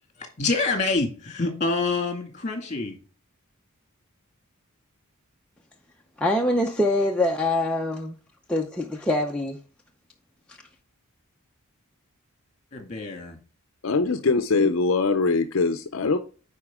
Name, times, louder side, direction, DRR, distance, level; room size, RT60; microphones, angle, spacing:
voice 1, 0.2-3.0 12.7-13.4, left 3 dB, 35° left, 2.0 m, -27 dB
voice 2, 6.2-8.2 8.5-9.6, left 1 dB, 5° left, 0.6 m, -24 dB
voice 3, 13.8-16.2, left 4 dB, 60° left, 0.5 m, -22 dB
9.7 x 4.3 x 3.6 m
head